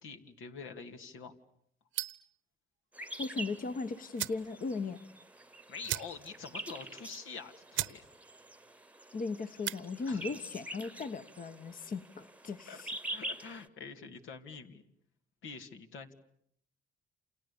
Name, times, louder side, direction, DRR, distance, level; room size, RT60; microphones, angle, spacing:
voice 1, 0.0-1.3 5.7-8.0 10.1-10.4 12.7-12.8 13.1-14.8 15.4-16.1, left 5 dB, 80° left, 6 dB, 2.6 m, -46 dB
sound 1, 1.9-2.3 3.7-3.8 4.1-4.5 4.9-5.0 5.2-5.3 5.8-6.4 6.8-6.9 7.4-7.5 7.7-8.0 8.3-8.7 9.5-9.8, right 13 dB, 80° right, 1.1 m, -37 dB
sound 2, 2.9-13.7, right 1 dB, 5° right, 1.1 m, -46 dB
voice 2, 3.2-5.0 9.1-12.9, left 4 dB, 45° left, 9 dB, 1.3 m, -37 dB
29.0 x 28.5 x 7.1 m, 0.71 s
cardioid pair, 90°, 20 cm